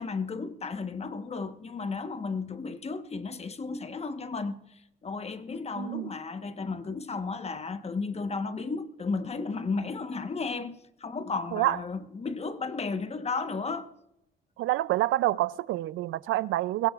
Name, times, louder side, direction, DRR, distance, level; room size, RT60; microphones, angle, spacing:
voice 1, 0.0-13.9, left 4 dB, 30° left, 1.2 m, -34 dB
voice 2, 5.8-6.1 11.5-11.8 14.6-16.9, right 16 dB, 85° right, 0.5 m, -27 dB
22.5 x 16.5 x 2.4 m
cardioid pair, 90°, 20 cm